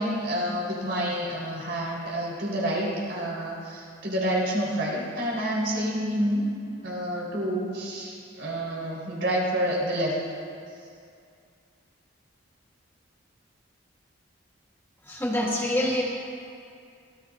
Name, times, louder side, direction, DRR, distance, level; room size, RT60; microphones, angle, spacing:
voice 1, 0.0-6.4 6.8-10.1, equal, 60° right, -5 dB, 4.2 m, -28 dB
voice 2, 15.0-16.0, left 1 dB, 10° left, -3 dB, 1.4 m, -26 dB
24.0 x 16.5 x 2.6 m, 2.4 s
head